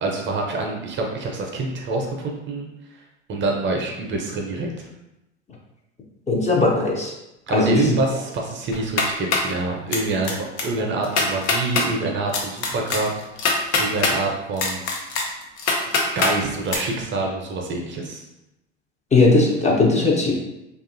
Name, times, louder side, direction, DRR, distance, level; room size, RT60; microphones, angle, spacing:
voice 1, 0.0-2.7 3.3-4.9 7.5-10.3 10.6-14.8 16.2-18.2, right 3 dB, 35° right, 1 dB, 0.5 m, -26 dB
voice 2, 6.3-7.1 7.5-8.0 19.1-20.3, left 3 dB, 20° left, -2 dB, 0.5 m, -18 dB
sound 1, 8.7-9.5 9.9-10.3 10.6-10.7 11.0-11.9 12.3-14.1 14.6-16.3 16.7-16.8, left 4 dB, 80° left, 0.6 m, -22 dB
2.6 x 2.3 x 2.5 m, 0.91 s
hypercardioid pair, 75°, 35 cm